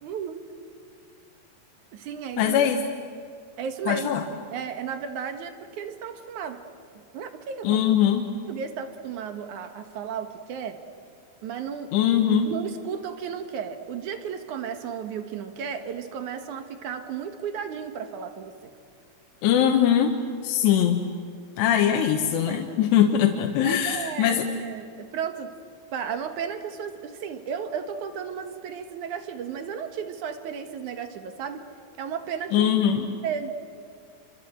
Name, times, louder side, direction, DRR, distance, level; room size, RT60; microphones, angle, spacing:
voice 1, 0.0-0.5 1.9-2.7 3.6-4.2 4.5-6.6 7.1-7.8 8.5-10.8 11.4-12.0 12.4-18.7 21.7-21.8 22.5-22.9 23.6-25.5 25.9-31.7 32.0-32.7 33.2-33.5, right 7 dB, 60° right, 8 dB, 2.3 m, -34 dB
voice 2, 2.4-2.9 3.9-4.2 7.6-8.3 11.9-12.5 19.4-20.1 20.4-21.1 21.6-24.5 32.5-33.1, left 9 dB, 85° left, 3 dB, 3.4 m, -21 dB
28.5 x 25.5 x 7.9 m, 2.2 s
omnidirectional pair, 4.8 m